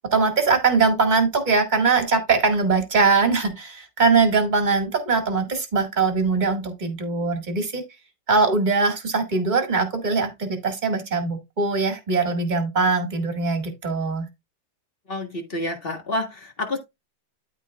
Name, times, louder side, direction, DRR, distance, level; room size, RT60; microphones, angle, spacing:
voice 1, 0.1-7.8 8.3-14.2, right 4 dB, 25° right, 1.8 m, -21 dB
voice 2, 15.1-16.8, left 1 dB, 30° left, 1.7 m, -28 dB
12.5 x 4.5 x 2.3 m
omnidirectional pair, 2.1 m